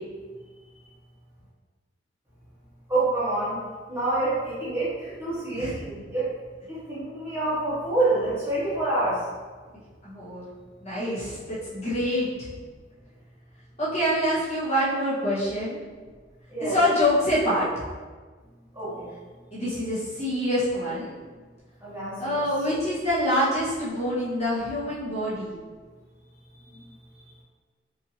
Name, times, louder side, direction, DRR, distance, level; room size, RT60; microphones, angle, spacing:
voice 1, 2.9-3.6 3.9-6.3 6.7-9.2 16.5-16.8 18.7-19.1 21.8-22.4 26.6-26.8, right 2 dB, 15° right, -10 dB, 1.1 m, -27 dB
voice 2, 10.0-10.4 10.8-12.5 13.8-15.8 16.6-17.7 19.5-21.1 22.2-25.6, equal, 35° left, -11 dB, 1.4 m, -26 dB
4.7 x 2.7 x 2.9 m, 1.4 s
head